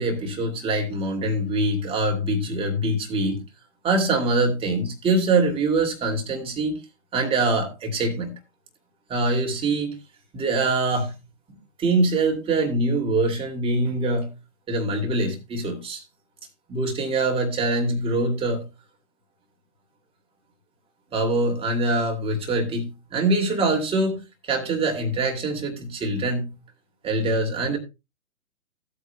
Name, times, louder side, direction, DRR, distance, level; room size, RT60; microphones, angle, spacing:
voice 1, 0.0-3.4 3.8-6.8 7.1-8.3 9.1-9.9 10.3-11.2 11.8-14.3 14.7-16.0 16.7-18.7 21.1-24.2 24.5-26.6 27.0-27.8, right 2 dB, 15° right, 2.4 m, -24 dB
16.5 x 8.3 x 2.2 m
figure-of-eight pair, 125°, 43 cm